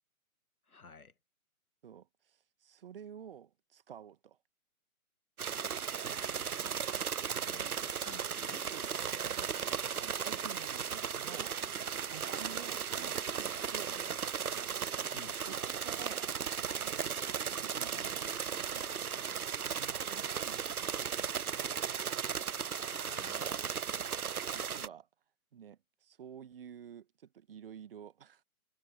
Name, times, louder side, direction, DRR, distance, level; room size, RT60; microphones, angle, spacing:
voice 1, 0.7-1.1 6.1-8.7 15.1-15.4 22.7-23.6, left 4 dB, 75° left, 2.0 m, -55 dB
voice 2, 1.8-4.4 7.2-7.3 8.7-9.5 10.0-11.6 12.1-14.1 15.4-16.4 16.7-17.1 17.6-18.4 18.7-19.2 19.8-21.0 24.4-25.1 25.5-28.4, right 8 dB, 40° right, 1.9 m, -51 dB
sound 1, 5.4-24.9, right 7 dB, 75° right, 0.7 m, -36 dB
figure-of-eight pair, 135°, 44 cm